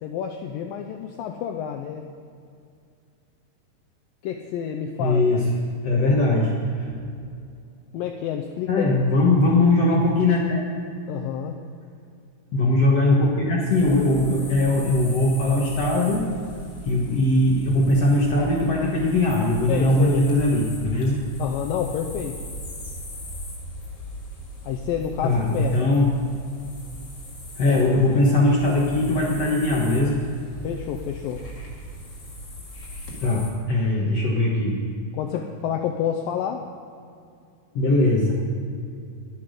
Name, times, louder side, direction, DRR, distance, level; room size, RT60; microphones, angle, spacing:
voice 1, 0.0-2.1 4.2-5.4 7.9-8.9 11.1-11.6 19.7-20.3 21.4-22.4 24.6-26.0 30.6-31.4 35.1-36.7, left 9 dB, 90° left, 3 dB, 2.0 m, -29 dB
voice 2, 5.0-5.4 5.8-7.1 8.7-10.6 12.5-16.2 16.8-21.2 25.2-26.1 27.6-30.2 33.2-34.8 37.7-38.3, left 2 dB, 60° left, -3 dB, 1.7 m, -20 dB
sound 1, 13.7-33.5, equal, 40° left, 3.0 m, -38 dB
21.0 x 8.4 x 5.2 m, 2.4 s
omnidirectional pair, 4.8 m